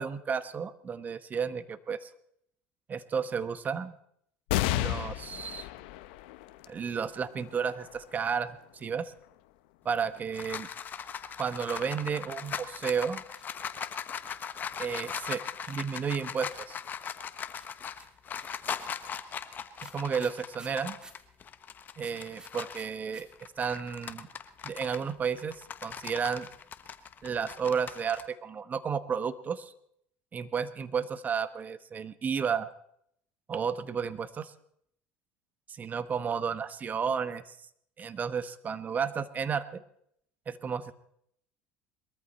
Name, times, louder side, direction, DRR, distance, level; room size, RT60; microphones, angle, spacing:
voice 1, 0.0-2.1 2.9-4.0 4.7-5.7 6.7-9.1 9.8-10.7 11.4-13.2 14.8-16.8 19.8-21.0 22.0-23.3 23.6-24.3 24.6-26.5 27.2-29.7 30.3-32.7 33.5-34.5 35.7-37.5 38.0-39.8 40.5-40.9, right 6 dB, 35° right, 14 dB, 1.2 m, -32 dB
sound 1, 4.5-11.4 12.0-12.1 13.2-13.8, left 15 dB, 80° left, 1.0 m, -36 dB
sound 2, 9.9-22.9 23.3-28.2, left 7 dB, 35° left, 1.3 m, -39 dB
sound 3, 12.9-14.5 15.2-16.8 17.6-21.3 22.0-23.2 23.5-23.6 23.8-24.3, right 2 dB, 15° right, 3.0 m, -53 dB
21.5 x 14.0 x 4.3 m, 0.70 s
supercardioid pair, 90°, 5 cm